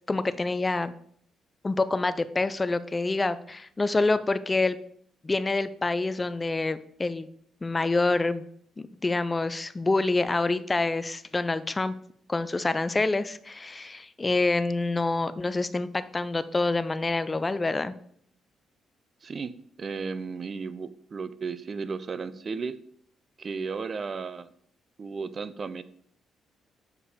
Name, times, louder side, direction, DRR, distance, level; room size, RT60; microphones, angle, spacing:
voice 1, 0.1-0.9 1.6-4.8 5.2-7.3 7.6-8.4 8.8-11.9 12.3-17.9, left 3 dB, 20° left, 13 dB, 0.5 m, -27 dB
voice 2, 19.2-22.8 23.4-24.5 25.0-25.8, right 5 dB, 40° right, 15 dB, 0.5 m, -34 dB
6.8 x 5.0 x 5.0 m, 0.64 s
cardioid pair, 90°, 0 cm